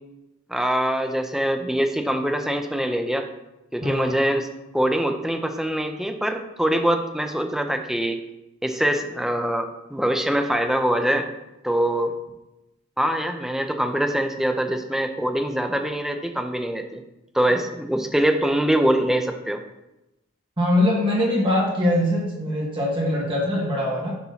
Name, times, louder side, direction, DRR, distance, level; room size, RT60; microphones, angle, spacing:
voice 1, 0.5-3.3 3.7-4.5 4.7-8.2 8.6-11.3 11.6-12.1 13.0-17.0 17.3-19.6, right 1 dB, ahead, 5 dB, 0.5 m, -23 dB
voice 2, 3.8-4.2 20.6-24.1, left 1 dB, 25° right, -3 dB, 1.3 m, -22 dB
7.6 x 3.0 x 5.6 m, 0.95 s
head